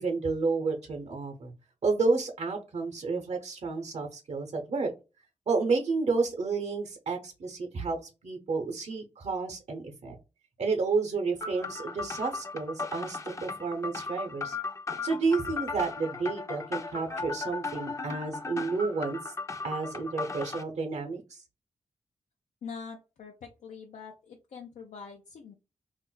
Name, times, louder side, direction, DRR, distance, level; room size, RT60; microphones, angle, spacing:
voice 1, 0.0-1.5 1.8-4.9 5.5-8.0 8.2-10.2 10.6-14.6 15.0-19.3 19.6-21.4, right 4 dB, 65° right, 4 dB, 0.7 m, -30 dB
sound 1, 11.4-20.6, left 4 dB, 25° left, 0.5 m, -36 dB
voice 2, 22.6-25.5, left 5 dB, 80° left, 1 dB, 0.5 m, -44 dB
2.4 x 2.1 x 3.8 m, 0.29 s
cardioid pair, 55°, 12 cm